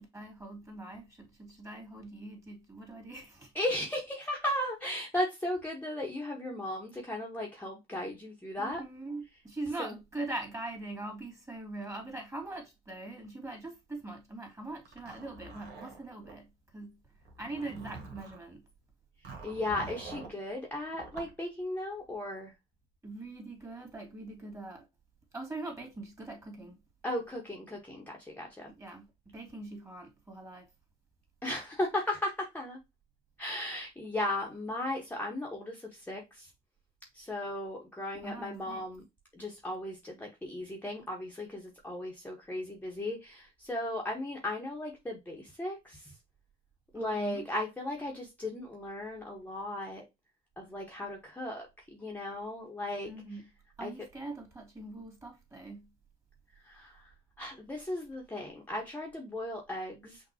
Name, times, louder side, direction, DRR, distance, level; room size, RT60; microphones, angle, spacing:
voice 1, 0.0-3.5 8.5-17.0 17.4-18.7 23.0-24.9 25.3-26.8 28.7-30.7 38.1-38.8 46.9-47.5 53.1-53.5 53.8-55.9, right 2 dB, 15° right, 2.4 m, -42 dB
voice 2, 3.5-8.8 9.8-9.9 19.4-22.5 27.0-28.7 31.4-32.8 33.4-36.5 37.1-39.0 39.3-46.0 46.9-50.0 50.6-53.1 53.8-53.9 56.6-57.0 57.4-60.2, left 1 dB, 10° left, 1.2 m, -36 dB
Zipper (clothing), 14.9-16.4 17.2-18.4 19.2-20.4 20.9-21.3, right 4 dB, 65° right, 1.6 m, -46 dB
5.9 x 2.6 x 2.8 m
hypercardioid pair, 65°, 17 cm